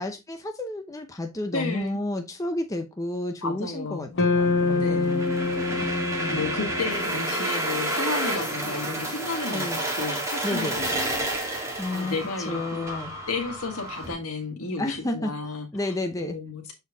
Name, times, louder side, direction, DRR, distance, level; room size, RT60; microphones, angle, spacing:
voice 1, 0.0-5.1 5.8-6.5 9.5-9.8 10.4-10.8 11.8-12.2 12.5-13.2 14.8-16.4, left 1 dB, 15° left, 0.7 m, -31 dB
voice 2, 1.5-2.0 3.4-4.1 4.7-5.8 6.3-11.6 11.9-12.9 13.3-15.9 16.2-16.7, left 3 dB, 70° left, 1.6 m, -33 dB
sound 1, 4.1-8.5, left 4 dB, 55° left, 1.1 m, -27 dB
sound 2, 4.4-14.1, right 1 dB, 15° right, 1.8 m, -30 dB
6.8 x 4.5 x 3.4 m
head